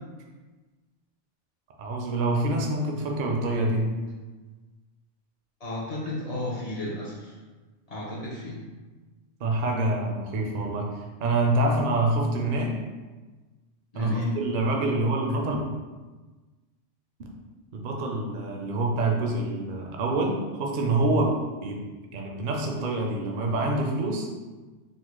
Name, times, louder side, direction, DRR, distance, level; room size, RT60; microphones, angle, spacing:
voice 1, 1.8-3.9 9.4-10.9 11.2-12.7 13.9-15.6 17.7-21.8 22.1-24.3, right 2 dB, 60° right, 0 dB, 0.5 m, -26 dB
voice 2, 5.6-7.3 7.9-8.6 13.9-14.3, left 1 dB, 45° left, -4 dB, 0.5 m, -33 dB
3.9 x 2.0 x 3.0 m, 1.3 s
omnidirectional pair, 1.3 m